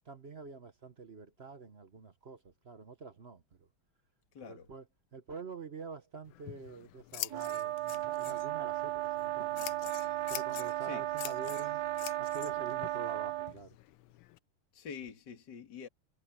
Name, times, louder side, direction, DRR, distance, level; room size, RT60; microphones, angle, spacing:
voice 1, 0.0-3.7 4.4-4.8 5.1-9.9 10.3-11.8 12.2-13.8, right 4 dB, 40° right, 0.9 m, -47 dB
voice 2, 4.3-4.7 10.8-11.1 14.7-15.9, left 6 dB, 55° left, 2.6 m, -45 dB
Scissors, 6.2-14.4, left 16 dB, 80° left, 1.4 m, -47 dB
sound 1, 7.3-13.5, right 14 dB, 60° right, 1.3 m, -35 dB
omnidirectional pair, 2.3 m